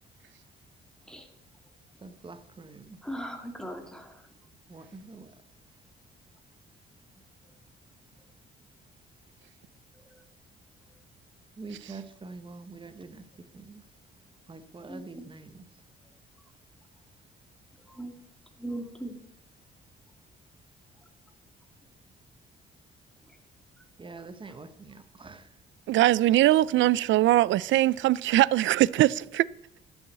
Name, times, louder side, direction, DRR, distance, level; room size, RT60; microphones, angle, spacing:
voice 1, 2.0-3.0 4.7-5.3 11.6-13.8 14.5-15.6 24.0-25.5, right 3 dB, 25° right, 1.0 m, -45 dB
voice 2, 3.0-4.1 14.9-15.2 17.9-18.1 18.6-19.1, right 1 dB, 5° left, 2.4 m, -38 dB
voice 3, 25.9-29.5, right 15 dB, 70° right, 0.4 m, -21 dB
11.0 x 7.2 x 8.0 m
cardioid pair, 90°, 20 cm